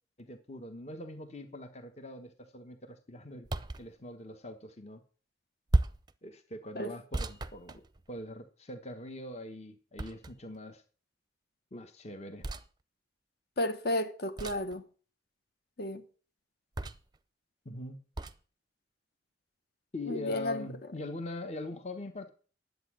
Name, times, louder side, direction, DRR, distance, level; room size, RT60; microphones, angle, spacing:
voice 1, 0.2-3.5 3.8-5.0 6.2-7.8 8.1-10.8 11.7-12.4 17.6-17.9 19.9-22.3, left 1 dB, 35° left, 1.2 m, -42 dB
sound 1, 3.4-3.9 5.7-6.1 7.1-8.3 10.0-10.6 12.4-12.7 14.4-14.7 16.8-17.2 18.2-18.4, right 2 dB, 20° right, 0.6 m, -33 dB
voice 2, 13.6-14.8 15.8-16.0 20.1-20.6, left 1 dB, 55° left, 1.3 m, -32 dB
11.0 x 8.2 x 6.2 m
head